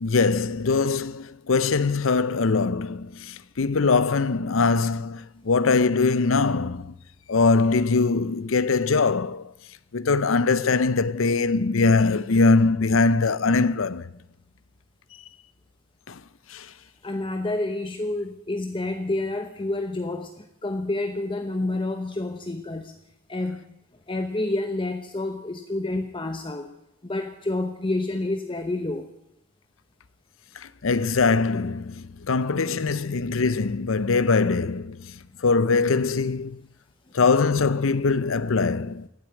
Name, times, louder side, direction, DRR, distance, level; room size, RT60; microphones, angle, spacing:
voice 1, 0.0-6.9 7.3-9.4 9.9-14.1 16.1-16.2 16.5-16.7 30.8-35.1 35.4-36.6 37.1-39.1, left 4 dB, 80° left, 0.7 m, -22 dB
voice 2, 17.0-22.9 23.3-23.6 24.1-26.7 27.0-29.1, left 2 dB, 25° left, 0.8 m, -29 dB
17.0 x 7.9 x 9.7 m
head